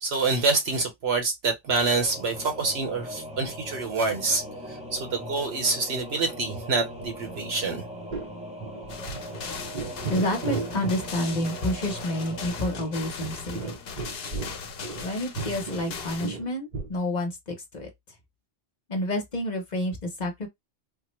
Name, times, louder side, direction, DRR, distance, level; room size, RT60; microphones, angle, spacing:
voice 1, 0.0-4.4 4.9-7.9, right 3 dB, 75° right, 1.3 m, -26 dB
Singing / Musical instrument, 1.6-14.2, equal, 5° right, 0.7 m, -40 dB
sound 1, 7.0-7.4 7.6-7.7 8.1-8.3 8.6-9.4 9.7-11.0 11.3-11.5 11.9-12.0 12.3-12.4 12.7-15.1 15.4-17.0, right 4 dB, 50° right, 0.8 m, -35 dB
sound 2, 8.9-16.3, left 5 dB, 70° left, 0.9 m, -39 dB
voice 2, 10.1-13.7 15.0-17.9 18.9-20.5, left 1 dB, 45° left, 0.9 m, -29 dB
3.6 x 2.1 x 3.0 m
omnidirectional pair, 1.1 m